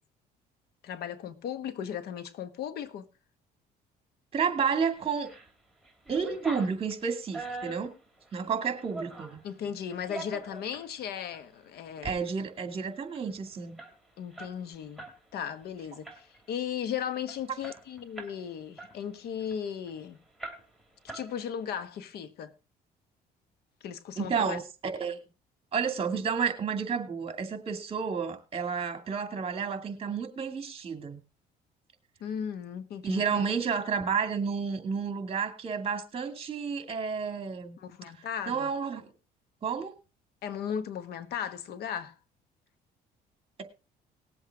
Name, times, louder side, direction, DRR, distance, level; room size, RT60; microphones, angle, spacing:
voice 1, 0.8-3.1 9.4-12.2 14.2-15.1 15.3-20.2 21.1-22.5 23.8-24.6 32.2-33.4 37.8-38.7 40.4-42.1, left 8 dB, 70° left, 1.3 m, -36 dB
voice 2, 4.3-5.3 6.1-7.9 8.3-9.4 12.0-13.8 24.2-24.6 25.0-25.2 25.7-31.2 33.0-37.8 38.5-39.1 39.6-39.9, right 6 dB, 35° right, 2.4 m, -31 dB
sound 1, 5.0-5.5 5.8-9.4 9.9-10.9 11.3-11.5 11.9-12.2 12.5-12.6 12.8-15.2 15.5-15.7 16.0-16.5 16.9-17.0 17.3-18.4 18.8-19.9 20.4-20.8 21.1-21.7, right 2 dB, ahead, 3.1 m, -43 dB
19.5 x 7.9 x 3.6 m
cardioid pair, 110°, 17 cm